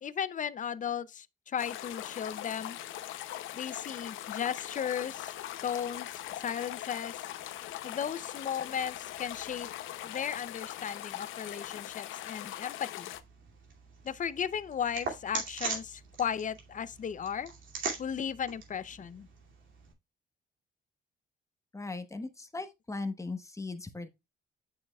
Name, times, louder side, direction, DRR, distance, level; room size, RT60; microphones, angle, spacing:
voice 1, 0.0-2.8 3.5-5.3 5.6-7.1 7.8-9.7 10.0-13.1 14.0-17.5 18.0-19.3, left 8 dB, 40° left, 0.6 m, -35 dB
sound 1, 1.6-13.2, left 13 dB, 85° left, 0.6 m, -41 dB
sound 2, 13.1-19.9, right 4 dB, 75° right, 2.5 m, -41 dB
voice 2, 21.7-24.1, left 3 dB, 15° left, 1.1 m, -38 dB
8.7 x 6.3 x 2.3 m
cardioid pair, 90°, 20 cm